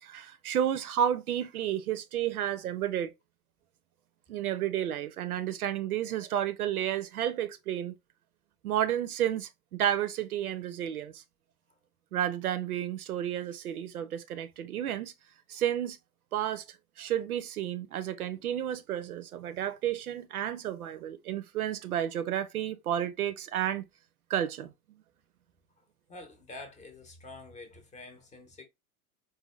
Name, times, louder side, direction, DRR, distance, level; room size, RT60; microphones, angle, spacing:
voice 1, 0.0-3.1 4.3-7.9 8.6-11.2 12.1-15.1 15.5-16.0 16.3-23.8 24.3-24.7, right 10 dB, 75° right, 0.6 m, -31 dB
voice 2, 26.1-28.6, left 2 dB, 15° left, 0.7 m, -47 dB
4.0 x 2.3 x 3.0 m
figure-of-eight pair, 90°, 45 cm